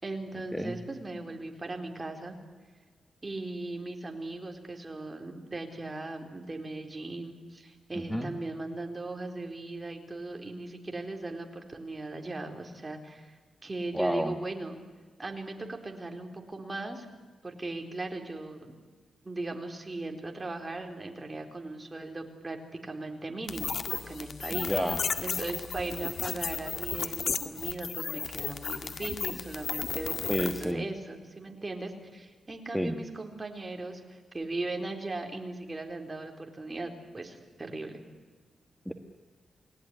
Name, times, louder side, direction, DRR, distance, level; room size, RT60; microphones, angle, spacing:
voice 1, 0.0-2.4 3.2-13.4 13.6-14.8 15.2-17.1 17.4-18.7 19.2-22.6 22.8-24.7 25.2-38.0, right 2 dB, 25° right, 3 dB, 4.1 m, -38 dB
voice 2, 7.9-8.3 13.9-14.3 24.5-25.0 30.3-30.9 32.7-33.0 38.8-38.9, equal, ahead, 6 dB, 1.6 m, -30 dB
sound 1, 23.5-30.7, left 6 dB, 65° left, 1.9 m, -34 dB
29.5 x 19.5 x 10.0 m, 1.4 s
wide cardioid pair, 115°, 0 cm